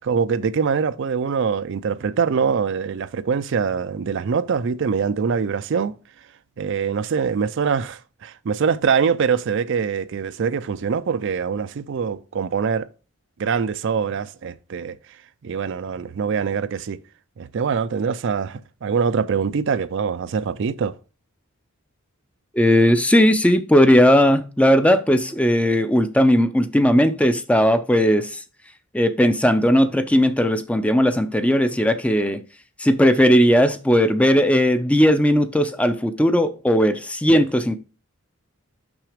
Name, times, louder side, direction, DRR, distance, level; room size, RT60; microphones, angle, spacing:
voice 1, 0.0-5.9 6.6-12.9 13.4-15.0 15.4-17.0 17.4-21.0 37.3-37.4, right 6 dB, 60° right, 0.4 m, -23 dB
voice 2, 22.5-28.4 28.9-32.4 32.8-37.8, equal, 5° left, 0.5 m, -17 dB
6.1 x 5.8 x 5.0 m
head